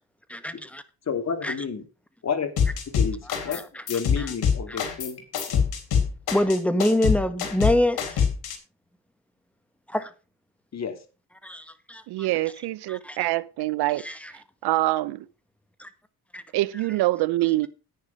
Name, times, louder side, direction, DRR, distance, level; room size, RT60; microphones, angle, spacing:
voice 1, 0.3-0.8 1.4-1.5 3.4-3.8 4.2-4.3 4.7-4.8 6.3-8.2 9.9-10.1 11.4-12.0 12.9-13.3 14.0-14.3 15.8-15.9 16.3-16.4, left 1 dB, 5° left, 1.6 m, -26 dB
voice 2, 1.1-1.8 2.2-2.5 2.9-3.6 3.9-5.2 5.5-5.6 10.7-11.0, left 6 dB, 45° left, 2.8 m, -30 dB
sound 1, 2.6-3.6 3.9-8.6, left 7 dB, 70° left, 3.7 m, -24 dB
voice 3, 12.1-14.1 14.6-15.3 16.5-17.7, right 17 dB, 85° right, 0.9 m, -25 dB
10.5 x 9.7 x 5.3 m
cardioid pair, 95°, 38 cm